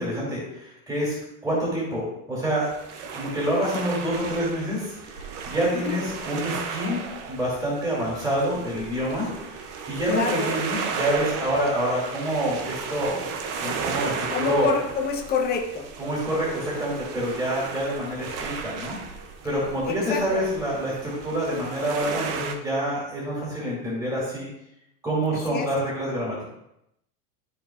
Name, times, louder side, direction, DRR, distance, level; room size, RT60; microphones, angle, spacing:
voice 1, 0.0-2.7 3.1-7.0 7.3-9.3 9.9-13.3 13.6-14.7 16.0-19.0 19.4-24.5 25.0-26.4, equal, 10° right, -6 dB, 2.6 m, -27 dB
sound 1, 2.6-22.6, right 5 dB, 35° right, 0.7 m, -34 dB
voice 2, 10.1-10.6 14.3-15.8 19.9-20.5 25.5-25.7, left 5 dB, 20° left, 2 dB, 0.9 m, -27 dB
13.5 x 4.6 x 2.5 m, 0.81 s
supercardioid pair, 160°, 46 cm